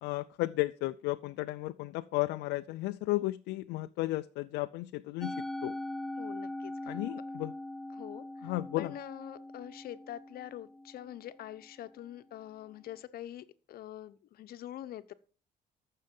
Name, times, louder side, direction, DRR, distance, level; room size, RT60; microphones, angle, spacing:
voice 1, 0.0-5.3 5.6-5.7 6.9-7.5 8.4-8.9, left 18 dB, 90° left, 0.5 m, -34 dB
Musical instrument, 5.2-11.6, left 1 dB, ahead, 0.5 m, -41 dB
voice 2, 6.2-6.9 7.9-8.5 8.8-15.1, left 12 dB, 65° left, 1.0 m, -45 dB
14.0 x 6.6 x 5.4 m
cardioid pair, 110°, 17 cm